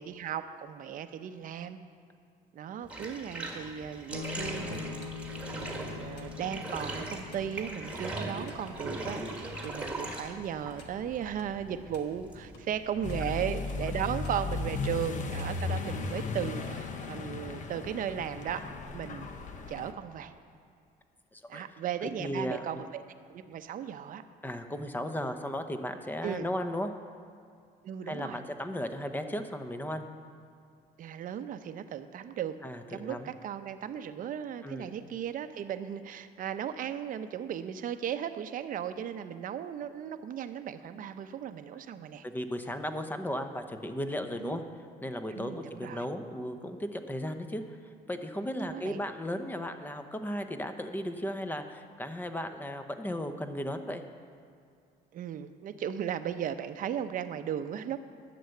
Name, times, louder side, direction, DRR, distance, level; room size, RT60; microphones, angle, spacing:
voice 1, 0.0-1.8 2.5-18.7 18.9-19.3 19.7-20.3 21.5-23.0 23.3-24.2 26.2-26.5 27.8-28.4 31.0-32.6 32.9-42.2 44.4-44.6 45.3-46.1 48.4-49.0 55.1-58.0, right 9 dB, 55° right, 10 dB, 0.7 m, -36 dB
Bathtub (filling or washing), 2.8-14.5, right 2 dB, 5° right, 1.7 m, -40 dB
sound 1, 4.1-15.6, left 5 dB, 75° left, 1.5 m, -46 dB
Accelerating revving vroom, 13.0-19.9, left 4 dB, 45° left, 0.9 m, -36 dB
voice 2, 21.3-21.6 22.0-22.6 24.4-26.9 28.1-30.1 32.6-33.3 34.6-35.0 42.2-44.6 45.0-47.8 48.1-54.0, left 1 dB, 10° left, 7 dB, 0.8 m, -35 dB
11.5 x 7.0 x 7.8 m, 2.4 s
cardioid pair, 110°, 17 cm